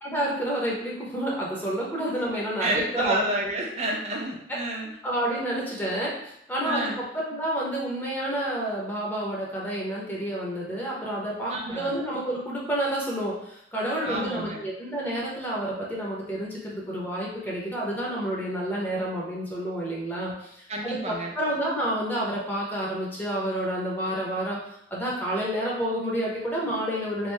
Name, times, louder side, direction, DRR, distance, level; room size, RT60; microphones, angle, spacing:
voice 1, 0.0-3.3 5.0-20.5 20.8-24.6 24.9-27.3, right 1 dB, 10° left, -5 dB, 0.8 m, -29 dB
voice 2, 2.4-4.9 6.6-7.0 11.5-11.9 14.0-14.6 20.7-21.3, right 1 dB, 40° right, 0 dB, 0.6 m, -30 dB
3.1 x 2.6 x 3.3 m, 0.74 s
head